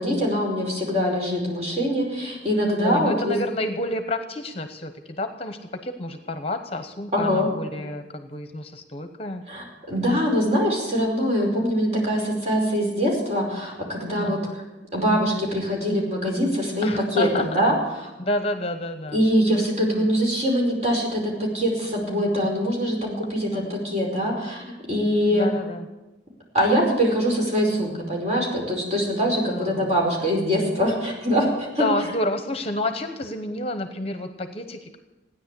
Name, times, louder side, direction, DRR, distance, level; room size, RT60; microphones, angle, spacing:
voice 1, 0.0-3.4 7.1-7.5 9.5-14.6 14.9-17.7 19.1-25.5 26.5-31.9, equal, 40° right, -2 dB, 5.0 m, -23 dB
voice 2, 2.8-9.4 14.2-14.6 16.8-17.6 18.2-19.2 23.5-23.7 25.3-25.9 29.4-29.9 31.8-35.0, left 1 dB, 35° left, 8 dB, 1.0 m, -29 dB
16.0 x 10.0 x 8.3 m, 1.0 s
head